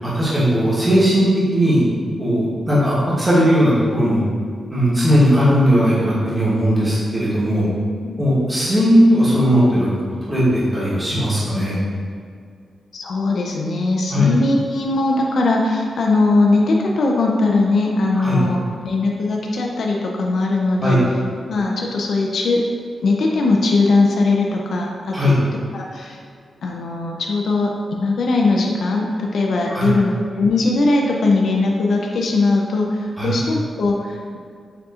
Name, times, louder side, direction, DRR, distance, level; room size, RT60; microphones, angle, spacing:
voice 1, 0.0-1.8 2.2-4.2 4.7-7.7 8.2-9.9 10.3-11.8 14.1-14.3 18.1-18.4 20.8-21.0 25.1-25.3 29.7-29.9 33.2-33.3, equal, 15° right, -9 dB, 1.1 m, -17 dB
voice 2, 12.9-21.0 21.5-22.7 23.0-25.3 25.7-26.2 26.6-34.4, left 3 dB, 60° left, -1 dB, 0.4 m, -20 dB
6.6 x 2.7 x 2.4 m, 2.2 s
wide cardioid pair, 160°, 0 cm